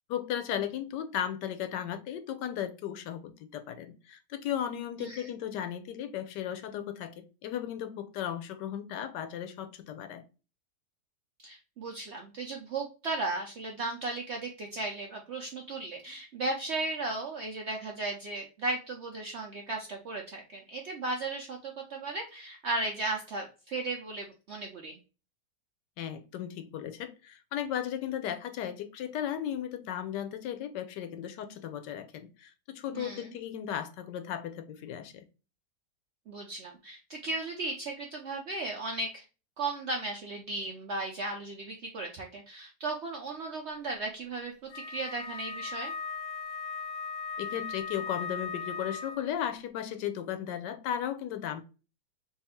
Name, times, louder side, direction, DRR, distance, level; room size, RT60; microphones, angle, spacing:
voice 1, 0.1-10.2 26.0-35.2 47.4-51.6, left 10 dB, 85° left, 1.2 m, -36 dB
voice 2, 11.4-25.0 32.9-33.3 36.3-39.2 39.6-44.5 44.9-45.9, right 2 dB, 70° right, 0.6 m, -36 dB
Wind instrument woodwind instrument, 44.7-49.4, left 5 dB, 50° left, 1.0 m, -38 dB
3.5 x 2.4 x 4.2 m
omnidirectional pair, 1.8 m